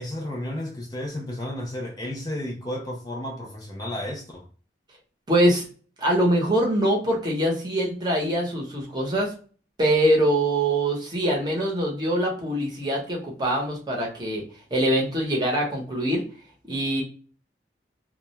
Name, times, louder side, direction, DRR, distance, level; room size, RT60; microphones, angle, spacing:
voice 1, 0.0-4.4, left 1 dB, 20° left, 0.4 m, -32 dB
voice 2, 5.3-5.6 6.0-9.3 9.8-14.4 14.7-16.2 16.7-17.0, right 1 dB, 25° right, 0.7 m, -23 dB
2.2 x 2.1 x 2.8 m
head